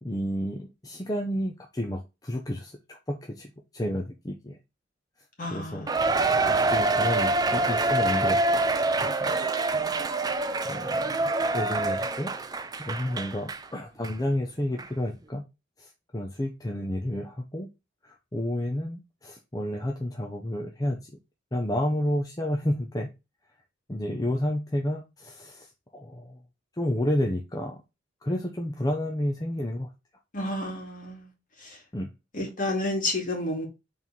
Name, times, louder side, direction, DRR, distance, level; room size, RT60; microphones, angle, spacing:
voice 1, 0.0-4.6 5.5-5.9 6.2-8.4 9.0-9.4 9.7-9.8 10.6-12.3 12.8-15.4 15.8-17.7 18.0-21.1 21.5-23.1 23.9-26.4 26.8-27.8 28.2-29.9 31.9-32.1, left 1 dB, 20° left, 0.7 m, -31 dB
voice 2, 5.4-6.0 30.3-31.3 32.3-33.7, left 1 dB, 40° left, 2.2 m, -30 dB
Cheering, 5.9-13.6 14.0-14.1 14.8-14.9, right 2 dB, 20° right, 0.4 m, -26 dB
4.7 x 3.8 x 5.4 m
head